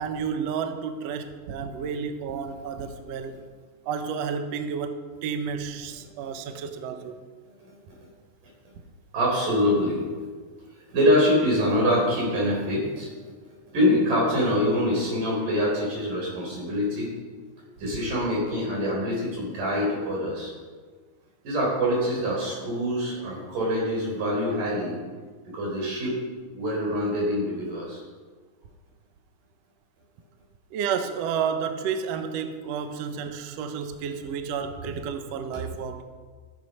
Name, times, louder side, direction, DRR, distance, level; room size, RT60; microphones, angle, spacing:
voice 1, 0.0-3.4 3.9-7.2 30.7-36.0, right 6 dB, 70° right, 8 dB, 1.7 m, -31 dB
voice 2, 9.1-10.0 10.9-13.1 13.7-17.1 17.8-20.5 21.4-25.0 25.5-26.2 26.5-28.0 35.5-35.6, equal, 90° right, -3 dB, 5.3 m, -25 dB
14.0 x 7.7 x 5.3 m, 1.5 s
omnidirectional pair, 3.6 m